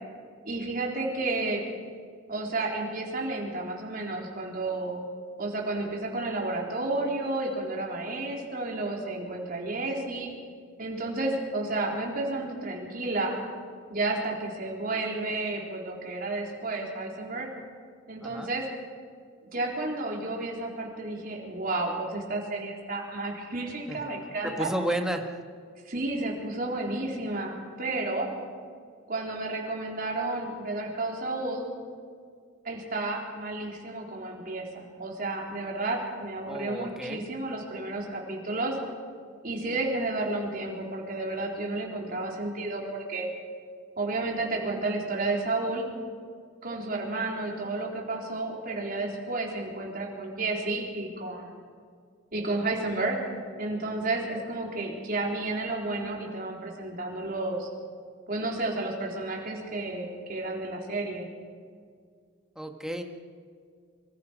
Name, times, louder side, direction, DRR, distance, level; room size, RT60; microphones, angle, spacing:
voice 1, 0.4-1.6 2.3-5.0 5.4-10.3 10.8-13.4 13.9-17.5 18.1-18.7 19.5-24.7 25.9-28.3 29.1-31.7 32.6-38.8 39.4-43.3 44.0-45.9 46.6-51.5 52.3-57.7 58.3-61.3, right 2 dB, 50° right, -1 dB, 3.9 m, -31 dB
voice 2, 24.4-25.3 36.4-37.3 62.5-63.0, right 1 dB, 5° right, 4 dB, 1.5 m, -32 dB
25.5 x 23.5 x 5.1 m, 2.1 s
head